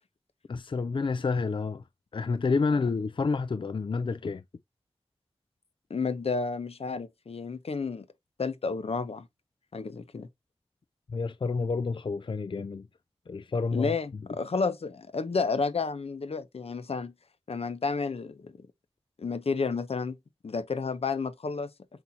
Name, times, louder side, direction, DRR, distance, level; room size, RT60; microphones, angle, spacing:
voice 1, 0.5-1.8 2.1-4.4 11.1-12.9 13.3-13.9, left 4 dB, 55° left, 0.4 m, -29 dB
voice 2, 5.9-8.1 8.4-9.3 9.7-10.3 13.7-17.1 17.5-18.5 19.2-20.2 20.4-21.7, left 4 dB, 75° left, 0.9 m, -31 dB
8.0 x 4.4 x 2.8 m
wide cardioid pair, 55°, 10 cm